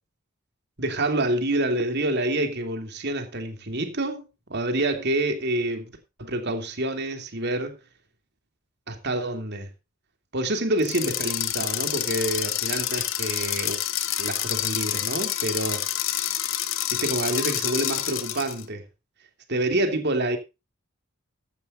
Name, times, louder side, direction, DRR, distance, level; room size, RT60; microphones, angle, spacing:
voice 1, 0.8-4.2 4.5-5.9 6.2-7.8 8.9-9.7 10.3-13.8 14.2-15.9 16.9-18.8 19.5-20.4, right 1 dB, 50° right, 3.0 m, -27 dB
sound 1, 10.8-18.6, left 12 dB, 60° left, 1.8 m, -28 dB
15.5 x 12.0 x 2.6 m
head